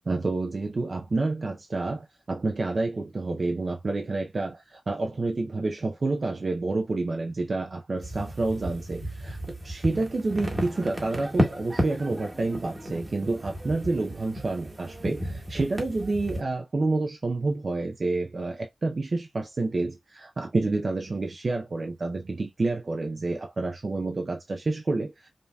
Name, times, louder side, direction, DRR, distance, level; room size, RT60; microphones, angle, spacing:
voice 1, 0.1-25.3, right 3 dB, 60° right, 0.5 m, -29 dB
sound 1, 8.0-16.4, equal, 30° right, 1.4 m, -32 dB
5.2 x 2.7 x 2.2 m
wide cardioid pair, 95°, 0 cm